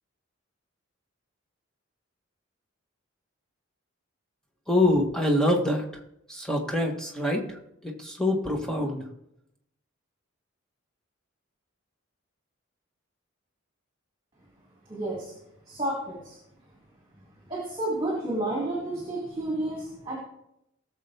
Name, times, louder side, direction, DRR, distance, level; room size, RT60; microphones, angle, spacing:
voice 1, 4.7-5.8 6.3-9.0, left 1 dB, 5° left, 1 dB, 1.3 m, -25 dB
voice 2, 14.9-15.3 15.7-16.4 17.5-20.2, right 1 dB, 20° right, -3 dB, 2.4 m, -31 dB
17.5 x 6.9 x 3.4 m, 0.80 s
head